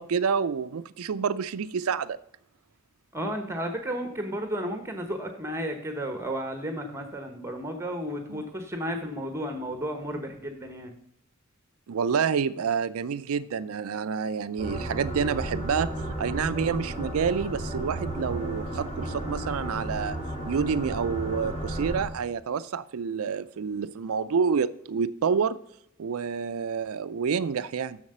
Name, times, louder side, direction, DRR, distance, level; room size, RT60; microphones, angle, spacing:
voice 1, 0.0-2.2 8.3-8.5 11.9-15.9 16.2-20.2 20.4-25.6 26.0-28.0, right 6 dB, 75° right, 13 dB, 0.4 m, -28 dB
voice 2, 3.1-10.9, equal, 10° right, 6 dB, 1.0 m, -33 dB
sound 1, 14.6-22.0, right 1 dB, 30° left, 2.7 m, -33 dB
7.3 x 6.5 x 6.6 m, 0.75 s
head